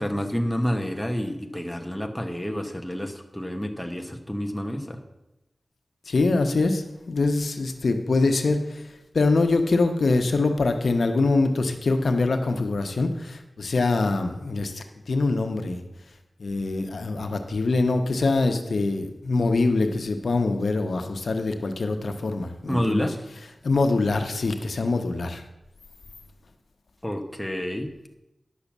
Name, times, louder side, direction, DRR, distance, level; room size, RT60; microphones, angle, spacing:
voice 1, 0.0-5.0 22.7-23.2 27.0-27.9, equal, 5° left, 4 dB, 1.1 m, -29 dB
voice 2, 6.1-15.8 16.4-23.1 23.6-25.4, left 3 dB, 75° left, 6 dB, 1.0 m, -24 dB
10.5 x 6.8 x 7.3 m, 0.95 s
wide cardioid pair, 105°, 0 cm